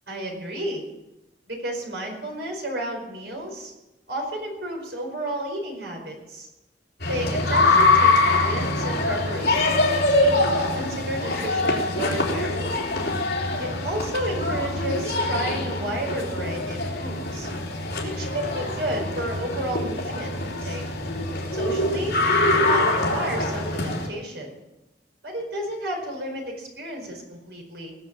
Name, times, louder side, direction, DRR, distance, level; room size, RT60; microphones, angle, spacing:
voice 1, 0.1-0.8 1.5-3.7 4.1-6.5 7.1-12.8 13.6-17.5 18.0-20.8 21.5-22.2 22.5-24.5 25.2-27.9, right 1 dB, 80° right, 1 dB, 4.7 m, -32 dB
sound 1, 7.0-24.1, left 2 dB, 60° left, 3.2 m, -24 dB
20.0 x 7.2 x 7.5 m, 0.99 s
head